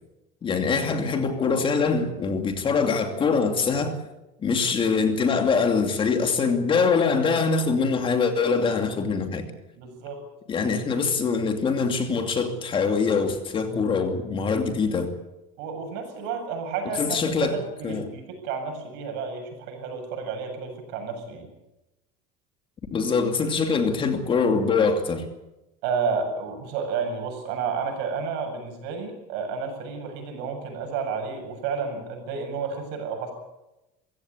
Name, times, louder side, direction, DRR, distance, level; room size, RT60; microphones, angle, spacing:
voice 1, 0.4-4.0 4.4-9.5 10.5-15.1 17.0-17.5 17.8-18.1 22.9-25.3, left 5 dB, 30° left, 2.6 m, -23 dB
voice 2, 9.8-10.2 15.6-21.5 25.8-33.3, right 5 dB, 70° right, 7.7 m, -31 dB
23.5 x 16.0 x 8.5 m
cardioid pair, 145°, 18 cm